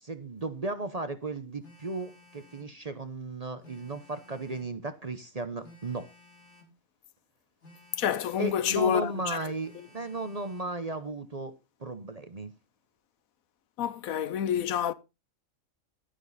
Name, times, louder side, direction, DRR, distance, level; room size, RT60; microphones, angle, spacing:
voice 1, 0.0-6.1 8.4-11.5 11.8-12.5, right 3 dB, 35° right, 0.8 m, -35 dB
Telephone, 1.6-2.8 3.6-4.8 5.6-6.8 7.6-8.8 9.6-10.8, left 1 dB, 55° left, 3.4 m, -56 dB
voice 2, 8.0-9.4 13.8-14.9, left 9 dB, 80° left, 1.2 m, -28 dB
12.0 x 10.0 x 4.1 m
omnidirectional pair, 1.4 m